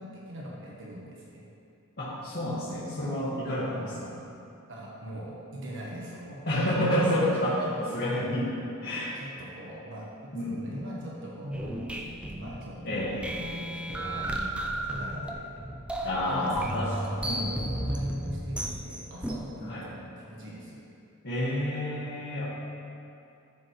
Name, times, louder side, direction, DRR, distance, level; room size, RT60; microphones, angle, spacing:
voice 1, 0.0-1.4 4.7-6.4 8.7-12.1 12.4-15.4 16.3-20.8, equal, 60° right, -4 dB, 1.3 m, -42 dB
voice 2, 2.0-4.1 6.5-8.5 8.8-9.1 10.3-10.6 12.8-13.2 16.0-16.9 17.2-17.6 19.7-19.8 21.2-22.4, left 1 dB, 50° left, -11 dB, 1.9 m, -29 dB
sound 1, 11.5-19.4, right 1 dB, 5° right, 0.5 m, -34 dB
13.0 x 6.8 x 3.2 m, 2.6 s
head